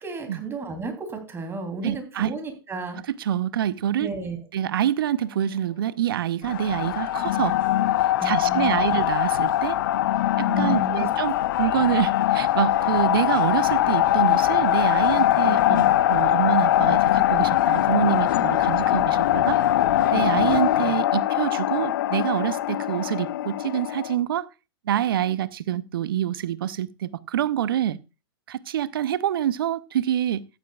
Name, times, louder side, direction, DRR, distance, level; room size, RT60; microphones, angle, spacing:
voice 1, 0.0-3.0 4.0-4.4 8.2-8.9 10.5-11.1, right 2 dB, 20° right, 3.1 m, -33 dB
voice 2, 1.8-2.3 3.2-4.1 4.5-7.6 8.2-9.8 10.4-19.6 20.1-24.5 24.9-28.0 28.5-30.5, right 10 dB, 70° right, 0.7 m, -26 dB
sound 1, 6.4-24.1, left 13 dB, 60° left, 0.7 m, -22 dB
14.5 x 11.5 x 2.4 m
hypercardioid pair, 105°, 12 cm